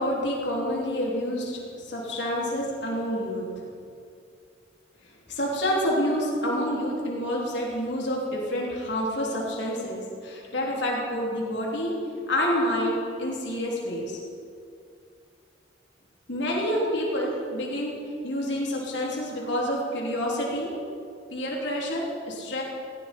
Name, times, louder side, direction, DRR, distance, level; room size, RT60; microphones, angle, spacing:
voice 1, 0.0-3.4 5.3-11.9 12.3-14.2 16.3-17.9 18.2-20.7 21.3-22.6, equal, 70° left, -3 dB, 3.2 m, -28 dB
17.5 x 16.0 x 4.5 m, 2.4 s
head